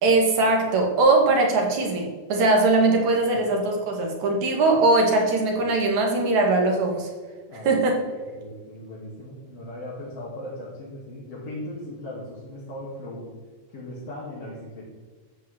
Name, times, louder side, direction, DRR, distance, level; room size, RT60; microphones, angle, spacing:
voice 1, 0.0-7.1 7.6-7.9, right 2 dB, 65° right, 0 dB, 3.3 m, -21 dB
voice 2, 7.5-8.0 8.4-13.3 13.7-14.9, left 1 dB, 50° left, -7 dB, 3.4 m, -38 dB
13.5 x 5.5 x 7.9 m, 1.4 s
omnidirectional pair, 3.7 m